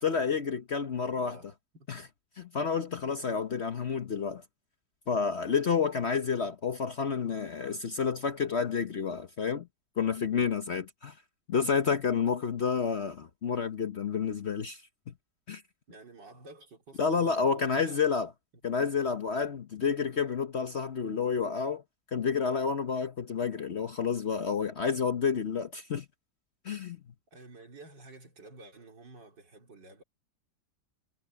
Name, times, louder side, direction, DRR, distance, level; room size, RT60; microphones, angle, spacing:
voice 1, 0.0-1.4 1.9-2.0 2.4-4.4 5.1-9.7 10.0-11.2 11.5-14.8 15.1-15.2 15.5-15.6 17.0-18.3 18.6-21.8 22.1-26.1 26.6-27.0, left 6 dB, 45° left, 1.0 m, -30 dB
voice 2, 1.0-1.9 15.9-18.0 27.3-30.0, right 2 dB, 85° right, 4.7 m, -51 dB
omnidirectional pair, 1.9 m